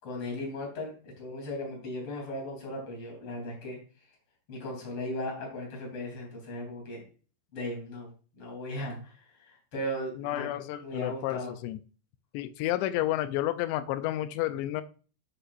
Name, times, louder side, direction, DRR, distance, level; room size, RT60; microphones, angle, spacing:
voice 1, 0.0-3.8 4.5-7.0 7.5-8.1 8.3-11.5, left 1 dB, 35° left, -1 dB, 4.0 m, -37 dB
voice 2, 10.2-11.8 12.3-14.8, left 14 dB, 85° left, 11 dB, 2.8 m, -31 dB
10.0 x 6.7 x 2.6 m, 0.38 s
omnidirectional pair, 5.0 m